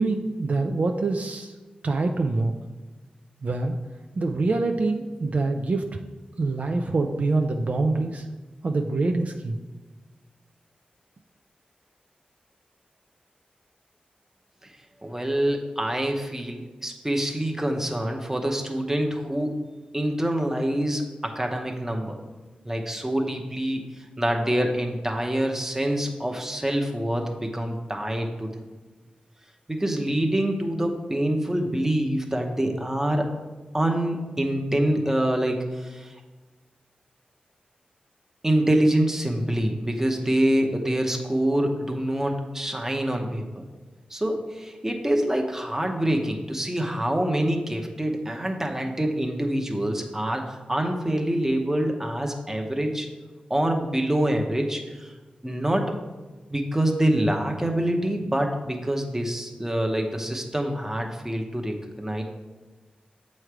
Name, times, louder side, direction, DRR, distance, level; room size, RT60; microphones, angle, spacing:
voice 1, 0.0-1.6 1.8-2.5 3.4-3.8 4.2-6.0 6.4-8.3 8.6-9.6, right 3 dB, 60° right, 4 dB, 0.4 m, -25 dB
voice 2, 15.0-19.6 19.9-22.2 22.6-28.5 29.7-33.3 33.7-36.1 38.4-43.6 44.1-53.1 53.5-55.1 55.4-56.0 56.5-62.2, right 1 dB, 15° right, 3 dB, 0.9 m, -26 dB
7.7 x 3.2 x 4.7 m, 1.2 s
wide cardioid pair, 65°, 3 cm